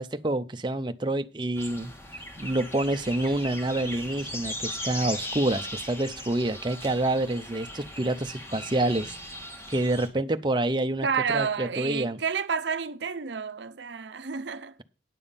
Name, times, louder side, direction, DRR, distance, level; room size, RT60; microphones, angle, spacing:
voice 1, 0.0-1.9 2.4-9.2 9.7-11.1 11.3-12.2, right 2 dB, 25° right, 0.6 m, -27 dB
sound 1, 1.5-10.1, left 1 dB, 15° left, 1.6 m, -38 dB
voice 2, 11.0-14.8, right 6 dB, 70° right, 0.6 m, -30 dB
9.9 x 7.0 x 5.5 m
head